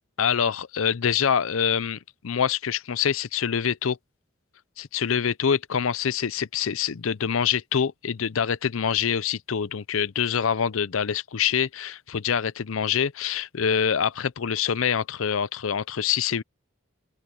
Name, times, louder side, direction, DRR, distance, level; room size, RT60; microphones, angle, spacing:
voice 1, 0.2-2.0 2.2-4.0 4.8-16.4, left 7 dB, 80° left, 0.6 m, -25 dB
open air
head